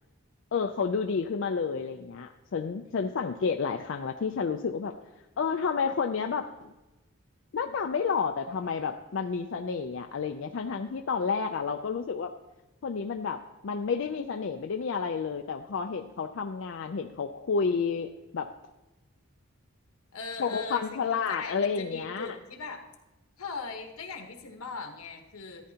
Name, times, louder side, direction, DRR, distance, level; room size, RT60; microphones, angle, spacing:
voice 1, 0.5-4.9 5.4-6.7 7.5-12.3 12.8-18.5 20.4-22.3, left 5 dB, 60° left, 5 dB, 0.4 m, -30 dB
voice 2, 20.1-21.0 21.3-22.8 23.4-25.7, left 4 dB, 85° left, 4 dB, 1.2 m, -39 dB
13.5 x 9.9 x 2.8 m, 1.1 s
head